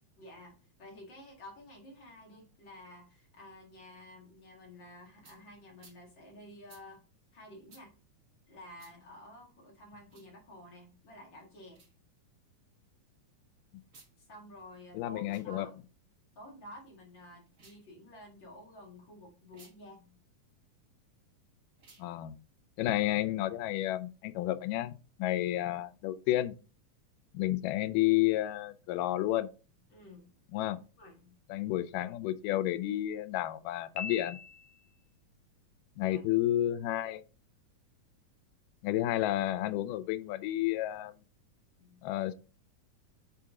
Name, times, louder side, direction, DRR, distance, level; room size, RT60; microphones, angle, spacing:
voice 1, 0.2-7.0 7.3-7.9 8.5-11.8 14.2-15.7 16.4-20.2 29.9-30.6 31.0-31.4 36.0-36.2 41.8-42.0, left 1 dB, 40° left, 2.3 m, -51 dB
sound 1, 5.2-5.4 5.8-6.0 6.7-6.8 7.7-7.8 8.8-8.9 10.0-10.3 11.7-11.9 13.8-14.1 15.2-15.5 17.5-17.8 19.5-19.7 21.7-22.1, right 4 dB, 45° right, 0.9 m, -58 dB
voice 2, 14.9-15.7 22.0-22.3 22.8-26.5 27.3-29.5 30.5-30.8 31.5-34.4 36.0-37.2 38.8-41.1 42.0-42.3, left 14 dB, 90° left, 2.2 m, -31 dB
Piano, 34.0-35.1, left 5 dB, 70° left, 2.0 m, -42 dB
8.5 x 3.8 x 3.6 m
omnidirectional pair, 3.7 m